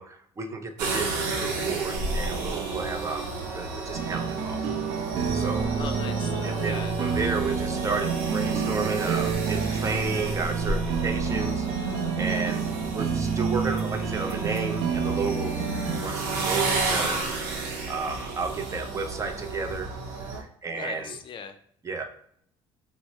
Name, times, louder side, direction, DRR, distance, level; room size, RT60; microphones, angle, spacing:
voice 1, 0.0-4.6 5.3-5.7 6.4-11.7 12.0-12.7 12.9-15.6 15.9-17.2 17.9-19.9 20.3-21.2 21.8-22.0, right 4 dB, 25° right, 5 dB, 0.5 m, -32 dB
sound 1, 0.8-20.4, right 3 dB, 90° right, 0.8 m, -32 dB
Bowed string instrument, 2.4-16.6, right 1 dB, 10° right, 1.0 m, -45 dB
sound 2, 3.9-16.0, right 6 dB, 70° right, 0.5 m, -29 dB
voice 2, 5.8-7.2 20.7-21.5, left 6 dB, 45° left, 7 dB, 0.4 m, -39 dB
4.2 x 2.0 x 2.7 m, 0.66 s
supercardioid pair, 95°, 12 cm